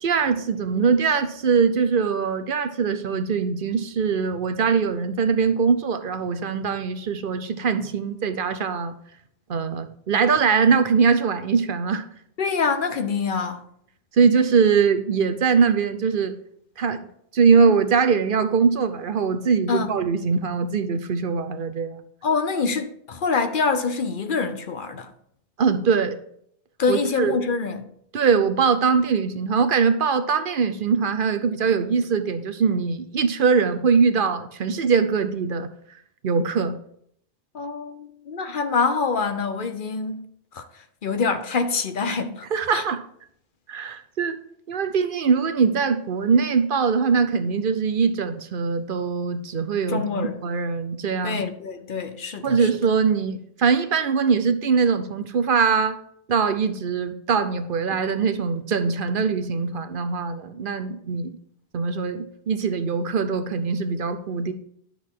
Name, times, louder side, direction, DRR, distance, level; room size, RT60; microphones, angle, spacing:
voice 1, 0.0-8.9 9.5-12.0 14.1-16.3 16.8-17.1 17.3-22.0 25.6-26.2 26.9-27.3 28.1-35.7 36.2-36.8 42.5-43.0 43.7-44.4 44.7-51.4 52.4-56.0 56.3-61.4 61.7-64.5, right 5 dB, 60° right, 0.8 m, -22 dB
voice 2, 12.4-13.6 19.7-20.0 22.2-25.1 26.8-27.9 37.5-42.5 42.7-42.9 49.9-50.5 51.2-52.7, left 4 dB, 55° left, 0.9 m, -25 dB
10.0 x 6.4 x 3.7 m
omnidirectional pair, 1.0 m